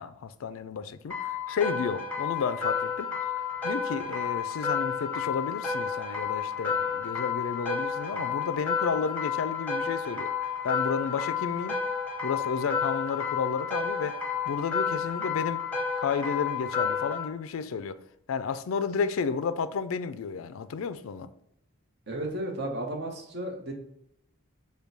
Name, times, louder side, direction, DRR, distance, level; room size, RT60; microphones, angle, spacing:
voice 1, 0.0-3.1 3.6-10.3 10.6-11.8 12.2-14.2 14.4-15.6 16.0-18.0 18.3-21.3, left 5 dB, 75° left, 0.4 m, -32 dB
sound 1, 1.1-17.2, left 6 dB, 5° left, 0.8 m, -31 dB
voice 2, 22.1-23.7, right 1 dB, 50° right, 1.0 m, -33 dB
5.2 x 2.2 x 4.6 m
head